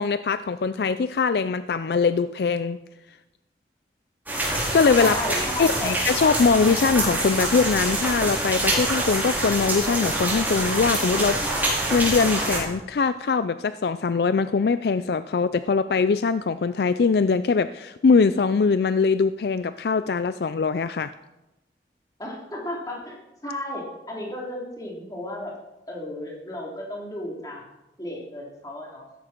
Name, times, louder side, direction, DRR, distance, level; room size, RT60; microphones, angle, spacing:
voice 1, 0.0-2.8 4.7-5.2 5.6-11.4 11.9-21.1, left 5 dB, 65° left, 13 dB, 0.4 m, -22 dB
sound 1, 4.3-12.6, right 1 dB, 10° right, 4.8 m, -25 dB
voice 2, 5.0-5.9 22.2-23.2 23.4-25.5 25.9-27.7 28.0-29.0, left 1 dB, 20° left, -3 dB, 3.8 m, -33 dB
16.0 x 13.5 x 4.5 m, 0.98 s
head